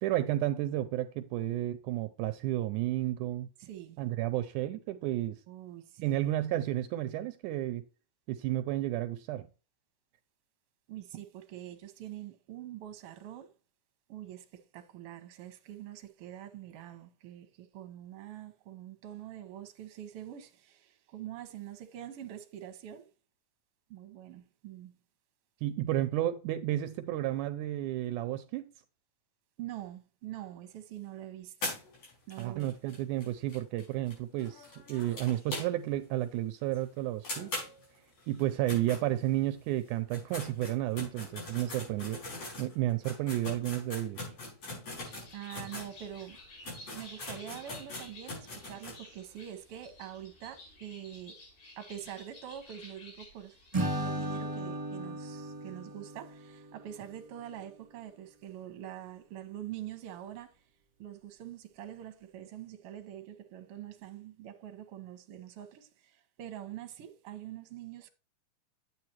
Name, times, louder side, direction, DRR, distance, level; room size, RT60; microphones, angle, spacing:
voice 1, 0.0-3.5 4.0-5.4 6.0-7.8 8.3-9.5 25.6-28.7 32.4-37.5 38.3-42.2 42.6-44.3, right 14 dB, 80° right, 2.0 m, -32 dB
voice 2, 3.6-4.0 5.5-6.2 10.9-13.5 14.1-14.5 14.7-23.1 23.9-24.9 29.6-31.5 32.3-32.7 45.0-46.4 46.7-51.4 51.8-53.6 54.0-60.5 61.0-68.1, right 11 dB, 60° right, 1.7 m, -45 dB
sound 1, 31.6-36.0 36.3-36.4 36.7-36.8 37.2-39.6 40.0-45.9 46.3-46.4 46.6-49.0, left 2 dB, 60° left, 6.9 m, -42 dB
Bird, 44.8-54.5, left 2 dB, 85° left, 4.8 m, -53 dB
Acoustic guitar / Strum, 53.7-57.0, right 1 dB, 15° right, 1.6 m, -36 dB
9.5 x 8.1 x 2.9 m
omnidirectional pair, 3.7 m